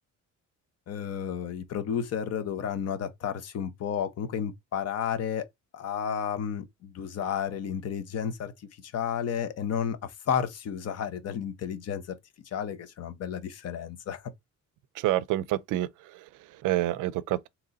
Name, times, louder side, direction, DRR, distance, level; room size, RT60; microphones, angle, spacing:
voice 1, 0.9-5.5 5.7-8.5 8.8-12.2 12.5-14.2, left 8 dB, 55° left, 0.8 m, -32 dB
voice 2, 14.9-17.5, right 15 dB, 85° right, 0.5 m, -29 dB
3.8 x 3.0 x 4.0 m
cardioid pair, 150°, 31 cm